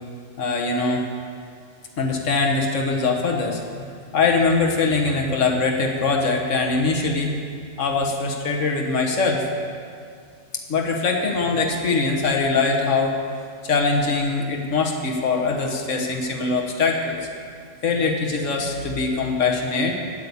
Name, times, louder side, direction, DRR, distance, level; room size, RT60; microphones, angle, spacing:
voice 1, 0.4-1.0 2.0-3.9 4.1-7.3 7.8-9.5 10.7-13.1 13.6-17.2 17.8-19.9, left 4 dB, 80° left, 1 dB, 1.5 m, -22 dB
9.0 x 8.6 x 8.1 m, 2.2 s
omnidirectional pair, 1.3 m